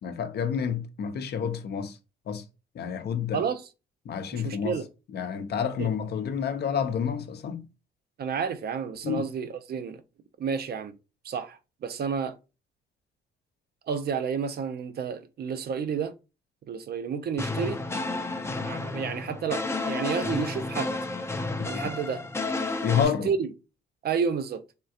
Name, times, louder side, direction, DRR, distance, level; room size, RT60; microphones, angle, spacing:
voice 1, 0.0-2.0 2.3-2.4 2.7-3.4 4.1-4.8 5.1-7.7 9.0-9.2 21.7-21.8 22.8-23.3, left 7 dB, 55° left, 0.6 m, -29 dB
voice 2, 3.3-3.6 4.3-4.9 5.8-5.9 8.2-10.0 10.4-10.9 11.2-12.4 13.9-16.1 16.7-17.8 18.6-21.0 21.7-22.2 22.9-23.5 24.0-24.6, right 6 dB, 55° right, 0.5 m, -30 dB
sound 1, 17.4-23.1, left 3 dB, 15° left, 0.5 m, -31 dB
3.5 x 2.3 x 2.7 m
cardioid pair, 90°, 20 cm